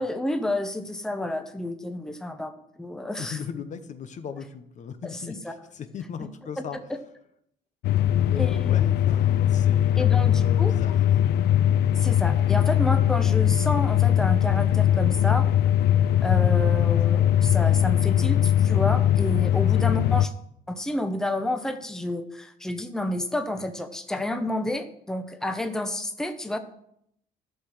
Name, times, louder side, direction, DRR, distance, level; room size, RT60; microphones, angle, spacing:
voice 1, 0.0-2.5 2.8-3.4 5.0-5.5 6.6-6.7 6.9-7.0 8.4-8.7 10.0-10.7 11.9-15.5 16.2-20.3 20.7-26.6, left 1 dB, 5° left, 8 dB, 0.8 m, -30 dB
voice 2, 3.2-6.8 8.3-10.9, left 6 dB, 45° left, 10 dB, 1.0 m, -38 dB
sound 1, 7.8-20.3, left 11 dB, 75° left, 0.4 m, -21 dB
12.0 x 6.0 x 6.5 m, 0.75 s
cardioid pair, 110°, 17 cm